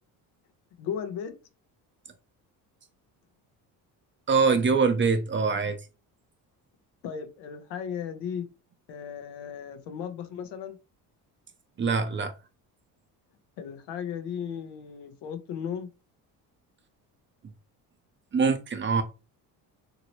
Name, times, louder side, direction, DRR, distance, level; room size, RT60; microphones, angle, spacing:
voice 1, 0.8-1.3 7.0-8.5 8.9-10.8 13.6-15.9, left 8 dB, 80° left, 0.8 m, -35 dB
voice 2, 4.3-5.8 11.8-12.3 18.3-19.0, right 5 dB, 30° right, 0.5 m, -23 dB
2.9 x 2.7 x 2.8 m
cardioid pair, 95°, 40 cm